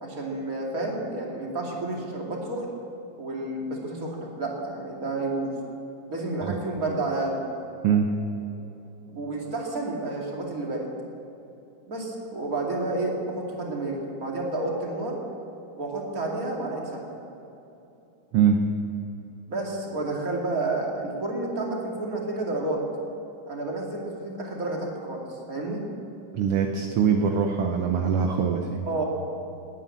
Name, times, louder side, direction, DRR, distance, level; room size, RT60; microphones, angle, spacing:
voice 1, 0.0-2.7 3.2-5.5 6.1-7.4 9.1-10.9 11.9-15.2 15.8-17.2 19.5-22.8 23.5-25.2 25.5-25.8 28.9-29.0, right 2 dB, 30° right, -1 dB, 2.7 m, -30 dB
voice 2, 26.3-28.9, right 7 dB, 65° right, 3 dB, 1.6 m, -23 dB
20.5 x 9.6 x 7.4 m, 2.9 s
omnidirectional pair, 3.5 m